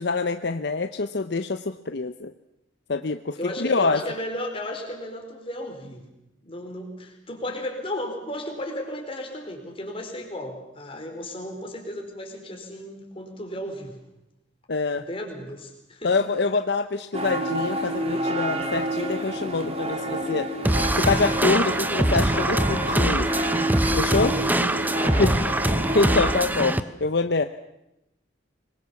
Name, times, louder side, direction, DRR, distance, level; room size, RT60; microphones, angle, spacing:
voice 1, 0.0-2.3 2.9-4.0 14.7-15.0 16.0-20.5 21.0-23.3 24.0-24.3 25.2-25.3 25.9-27.5, left 3 dB, 60° left, 9 dB, 0.8 m, -25 dB
voice 2, 3.4-6.0 6.4-14.0 14.9-16.1 24.1-24.6 24.9-25.4, left 1 dB, 30° left, 3 dB, 4.6 m, -34 dB
sound 1, 17.1-26.4, right 1 dB, 35° right, 3.0 m, -29 dB
sound 2, 20.6-26.8, right 1 dB, 10° right, 0.9 m, -23 dB
25.0 x 21.5 x 7.2 m, 0.90 s
head